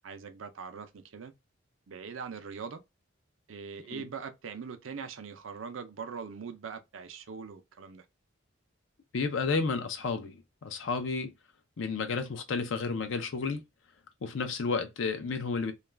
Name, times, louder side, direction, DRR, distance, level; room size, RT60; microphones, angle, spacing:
voice 1, 0.0-1.3 1.9-2.8 3.5-8.0, right 6 dB, 75° right, 0.5 m, -42 dB
voice 2, 9.1-11.3 11.8-13.6 14.2-15.7, left 4 dB, 65° left, 0.5 m, -31 dB
2.4 x 2.2 x 3.2 m
head